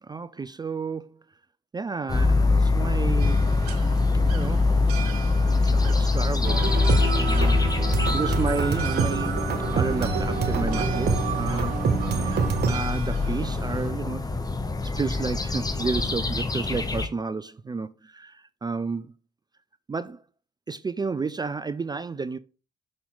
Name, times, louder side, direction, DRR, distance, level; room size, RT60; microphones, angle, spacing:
voice 1, 0.0-1.2 1.7-3.5 4.2-4.7 5.5-6.8 7.2-9.4 9.7-11.8 12.1-14.3 14.8-19.1 19.9-20.2 20.7-22.4, right 4 dB, 20° right, 0.4 m, -31 dB
sound 1, 2.1-17.1, left 3 dB, 20° left, 1.0 m, -24 dB
sound 2, 3.2-13.9, right 9 dB, 90° right, 0.6 m, -42 dB
sound 3, 6.4-12.7, right 5 dB, 55° right, 1.2 m, -26 dB
5.7 x 4.3 x 3.8 m
hypercardioid pair, 50°, 20 cm